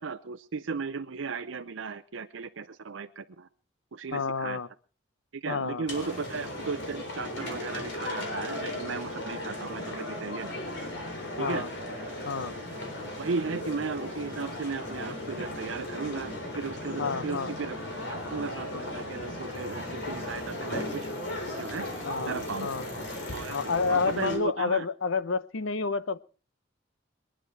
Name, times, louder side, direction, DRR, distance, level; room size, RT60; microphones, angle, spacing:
voice 1, 0.0-3.5 3.9-4.6 5.3-10.7 11.4-11.7 13.2-17.8 18.1-21.1 21.5-21.9 22.3-22.7 23.3-24.9, right 4 dB, 85° right, 8 dB, 0.6 m, -36 dB
voice 2, 4.1-4.7 5.5-5.8 11.4-11.7 12.2-12.5 17.0-17.5 22.0-22.8 23.5-26.2, left 4 dB, 85° left, 16 dB, 0.7 m, -29 dB
sound 1, 5.9-24.4, left 1 dB, 65° left, 3.8 m, -36 dB
22.5 x 10.0 x 4.6 m, 0.39 s
head